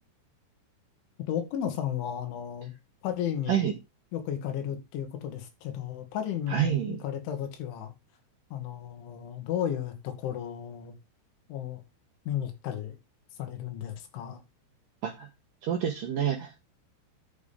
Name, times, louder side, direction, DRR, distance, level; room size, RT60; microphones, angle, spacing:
voice 1, 1.3-2.7 3.0-3.7 4.1-7.9 8.5-11.0 11.5-11.8 12.3-13.0 13.4-14.4, left 10 dB, 70° left, 4.2 m, -34 dB
voice 2, 6.5-7.0 15.0-15.3 15.6-16.6, right 9 dB, 85° right, 1.9 m, -28 dB
11.0 x 7.4 x 3.7 m
omnidirectional pair, 5.8 m